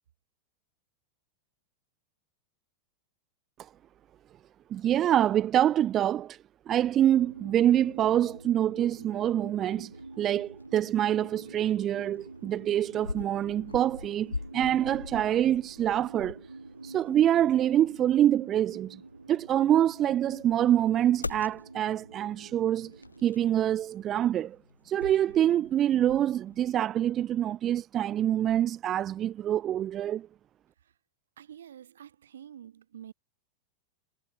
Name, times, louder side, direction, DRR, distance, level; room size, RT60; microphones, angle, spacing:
voice 1, 4.7-6.4 6.7-9.9 10.2-16.4 16.8-19.0 19.3-22.9 23.2-24.6 24.8-30.3, right 11 dB, 30° right, 0.3 m, -25 dB
sound 1, 7.1-23.3, right 3 dB, 80° right, 2.5 m, -48 dB
sound 2, 7.7-26.8, left 3 dB, 80° left, 1.1 m, -45 dB
voice 2, 31.4-33.1, right 9 dB, 65° right, 2.5 m, -48 dB
figure-of-eight pair, 90°, 0 cm